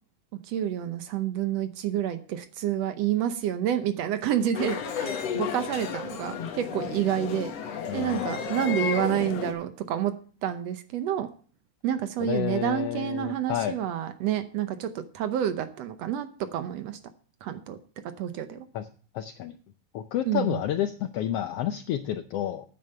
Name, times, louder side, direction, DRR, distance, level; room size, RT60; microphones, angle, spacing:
voice 1, 0.5-7.5 7.9-10.1 10.4-11.3 11.8-14.9 15.1-17.0 17.4-17.8 18.2-18.7 20.2-20.6, right 10 dB, 70° right, 10 dB, 1.8 m, -29 dB
sound 1, 4.5-9.5, left 7 dB, 60° left, 2.3 m, -32 dB
voice 2, 7.9-8.4 12.2-13.7 18.7-18.9 19.1-19.6 19.9-22.6, left 11 dB, 80° left, 10 dB, 1.4 m, -30 dB
9.1 x 9.0 x 5.5 m, 0.42 s
omnidirectional pair, 3.4 m